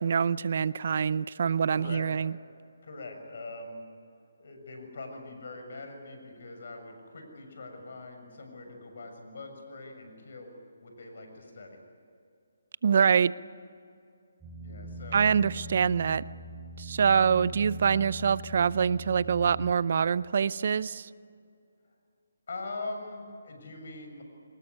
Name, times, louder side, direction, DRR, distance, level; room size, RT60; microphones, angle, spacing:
voice 1, 0.0-2.3 12.8-13.3 15.1-16.2 16.8-21.1, right 6 dB, 50° right, 19 dB, 0.6 m, -25 dB
voice 2, 1.6-2.1 2.8-3.8 4.4-10.5 10.8-11.8 14.6-15.3 22.5-24.2, left 2 dB, 60° left, 5 dB, 6.8 m, -42 dB
sound 1, 14.4-19.7, right 1 dB, 5° right, 6.6 m, -42 dB
24.5 x 20.0 x 9.7 m, 2.4 s
figure-of-eight pair, 150°, 0 cm